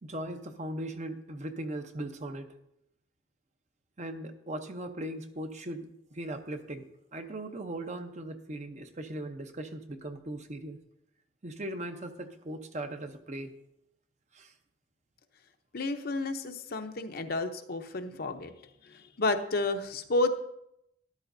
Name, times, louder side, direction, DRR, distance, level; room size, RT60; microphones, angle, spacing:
voice 1, 0.0-2.5 4.0-10.8 11.4-13.6 14.3-14.5, right 1 dB, 40° right, 7 dB, 0.8 m, -39 dB
voice 2, 15.7-20.3, left 2 dB, 55° left, 7 dB, 0.7 m, -31 dB
13.0 x 11.0 x 2.6 m, 0.80 s
head